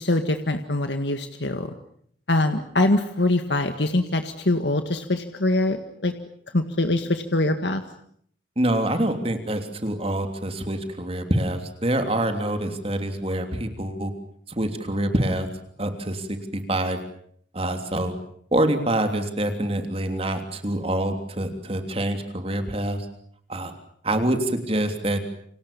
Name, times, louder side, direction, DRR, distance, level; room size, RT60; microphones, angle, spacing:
voice 1, 0.0-1.7 2.3-6.1 6.5-7.8, left 2 dB, 80° left, 7 dB, 1.9 m, -23 dB
voice 2, 8.6-14.1 14.6-15.5 15.8-16.4 16.7-17.0 17.5-18.1 18.5-23.1 23.5-23.7 24.0-25.2, right 1 dB, 35° right, 6 dB, 3.2 m, -25 dB
29.5 x 26.0 x 7.0 m, 0.64 s
head